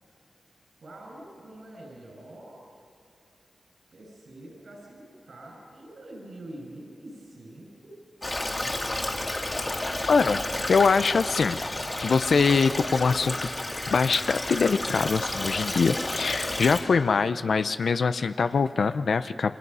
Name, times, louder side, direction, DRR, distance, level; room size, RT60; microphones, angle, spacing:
voice 1, 0.8-2.7 3.9-7.9 8.5-9.2, right 1 dB, 70° right, -1 dB, 6.2 m, -45 dB
Stream, 8.2-16.8, left 1 dB, 30° left, 2.4 m, -31 dB
voice 2, 10.1-11.6 12.0-13.5 13.9-19.6, left 5 dB, 75° left, 11 dB, 0.6 m, -23 dB
29.5 x 24.0 x 5.5 m, 2.6 s
wide cardioid pair, 70°, 0 cm